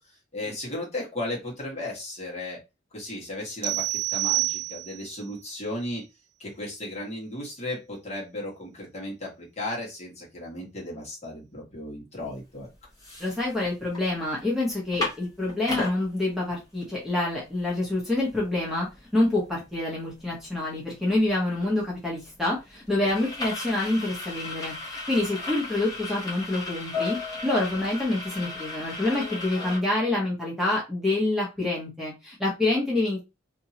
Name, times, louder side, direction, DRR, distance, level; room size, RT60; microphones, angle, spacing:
voice 1, 0.3-2.6 2.9-6.0 6.4-12.7 23.0-23.1, left 1 dB, 35° left, -3 dB, 1.6 m, -35 dB
sound 1, 3.6-5.2, right 18 dB, 70° right, 0.4 m, -27 dB
sound 2, 12.3-12.4 12.8-14.0 14.4-14.5 14.7-16.0 16.5-16.6 16.9-29.8, left 3 dB, 20° left, 1.4 m, -36 dB
voice 2, 13.2-18.9 19.1-24.7 25.1-27.2 27.4-33.2, left 2 dB, ahead, -4 dB, 1.1 m, -27 dB
3.6 x 2.9 x 2.8 m, 0.25 s
head